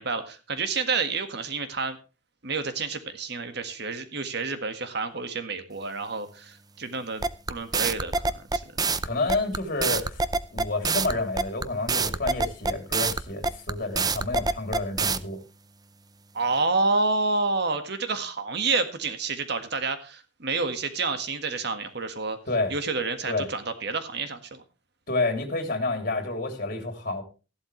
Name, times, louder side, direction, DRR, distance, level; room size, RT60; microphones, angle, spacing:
voice 1, 0.0-2.0 2.4-7.2 7.5-8.6 16.3-22.4 22.7-24.6, right 4 dB, 60° right, 1.7 m, -29 dB
sound 1, 7.2-15.2, right 4 dB, 20° right, 0.6 m, -25 dB
voice 2, 9.0-10.2 10.5-15.4 22.5-22.7 23.3-23.5 25.1-27.2, left 2 dB, 50° left, 3.1 m, -29 dB
14.5 x 12.0 x 3.2 m
head